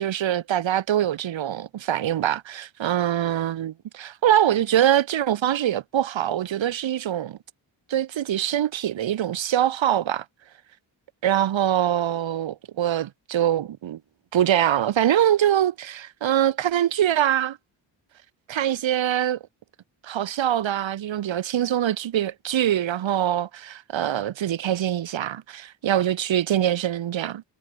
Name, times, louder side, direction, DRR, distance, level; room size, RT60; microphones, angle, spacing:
voice 1, 0.0-7.4 7.9-10.2 11.2-14.0 14.3-17.6 18.5-19.4 20.0-27.4, right 11 dB, 80° right, 1.5 m, -23 dB
cardioid pair, 70°, 45 cm